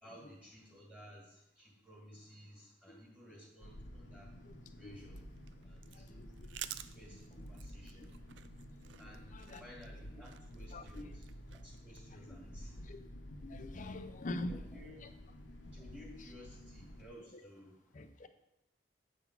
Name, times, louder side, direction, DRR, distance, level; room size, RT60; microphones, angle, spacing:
voice 1, 0.0-4.3 4.8-5.2 5.6-6.3 6.9-8.1 9.0-11.3 11.6-12.9 13.7-14.0 14.5-15.1 15.7-18.0, equal, 5° right, -3 dB, 2.0 m, -56 dB
sound 1, 3.6-17.1, equal, 80° left, 1.1 m, -51 dB
sound 2, 5.1-12.0, right 11 dB, 75° right, 0.4 m, -51 dB
voice 2, 5.9-6.3 8.0-8.1 9.0-9.6 10.1-10.2 10.7-11.2 12.3-12.4 12.8-13.0 13.3-14.6 17.3-17.4 17.9-18.3, left 1 dB, 45° left, 9 dB, 0.6 m, -45 dB
8.4 x 3.9 x 5.9 m, 0.87 s
head